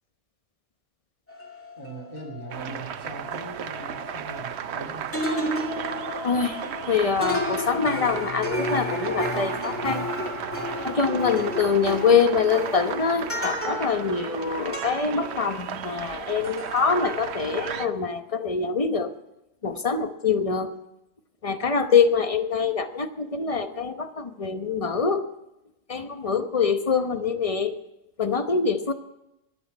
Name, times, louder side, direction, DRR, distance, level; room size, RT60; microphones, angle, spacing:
sound 1, 1.3-4.8 5.1-16.2 16.4-17.9, left 1 dB, 10° left, 2.3 m, -33 dB
voice 1, 1.8-5.2, right 2 dB, 20° right, 1 dB, 2.7 m, -40 dB
sound 2, 2.5-17.9, right 9 dB, 65° right, 0.9 m, -35 dB
voice 2, 6.2-6.6 6.9-10.0 10.8-19.1 19.6-20.7 21.4-25.2 25.9-27.8 28.2-28.9, left 5 dB, 30° left, 8 dB, 1.0 m, -24 dB
21.5 x 8.2 x 5.5 m, 0.88 s
omnidirectional pair, 1.3 m